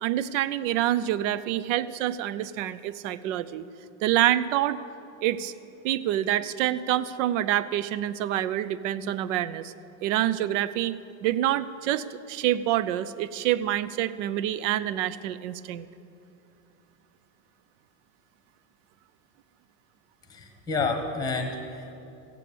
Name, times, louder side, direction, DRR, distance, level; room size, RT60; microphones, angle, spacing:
voice 1, 0.0-3.6 4.0-4.8 5.2-5.5 5.8-9.7 10.0-10.9 11.2-15.9, right 12 dB, 60° right, 15 dB, 0.6 m, -27 dB
voice 2, 20.3-21.9, left 3 dB, 10° left, 4 dB, 1.1 m, -30 dB
16.0 x 9.2 x 6.9 m, 2.8 s
supercardioid pair, 180°, 42 cm